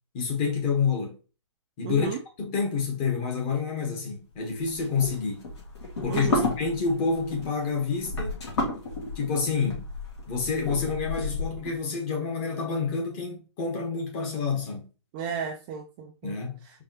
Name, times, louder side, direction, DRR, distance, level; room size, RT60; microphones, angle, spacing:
voice 1, 0.1-1.2 1.8-2.1 2.4-5.4 6.0-6.3 6.6-8.4 9.1-9.9 10.3-14.9 16.2-16.8, left 5 dB, 25° left, 1.3 m, -28 dB
voice 2, 1.8-2.2 6.1-6.5 15.1-16.3 16.6-16.8, right 7 dB, 20° right, 0.4 m, -33 dB
sound 1, 4.7-11.7, left 2 dB, 65° left, 2.5 m, -32 dB
4.7 x 3.4 x 3.0 m
hypercardioid pair, 155°, 15 cm